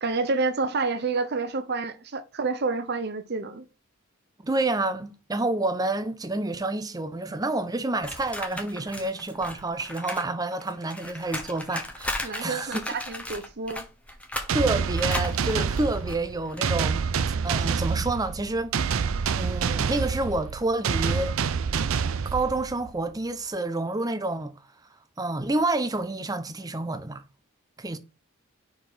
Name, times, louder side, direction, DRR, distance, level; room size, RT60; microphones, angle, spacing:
voice 1, 0.0-3.7 12.2-13.8, right 3 dB, 50° right, 0.8 m, -29 dB
voice 2, 4.4-12.8 14.5-17.1 17.4-18.7 19.4-21.4 22.3-24.5 25.2-27.2 27.8-28.0, right 2 dB, 20° right, 0.6 m, -28 dB
sound 1, 8.0-10.3 10.5-16.6, left 1 dB, 5° left, 0.9 m, -36 dB
sound 2, 14.5-23.0, right 6 dB, 75° right, 0.5 m, -27 dB
5.7 x 4.6 x 4.1 m
head